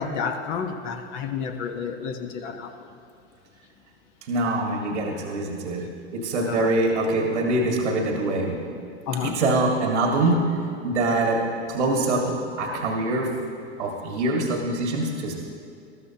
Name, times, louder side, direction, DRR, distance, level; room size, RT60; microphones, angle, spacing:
voice 1, 0.0-2.9 6.5-6.8 9.1-9.4, left 6 dB, 50° left, 4 dB, 1.4 m, -30 dB
voice 2, 4.2-5.8 6.1-8.6 9.2-10.6 10.8-13.4 13.8-15.3, right 2 dB, 85° right, 0 dB, 1.9 m, -24 dB
20.5 x 13.0 x 2.9 m, 2.3 s
hypercardioid pair, 105°, 35 cm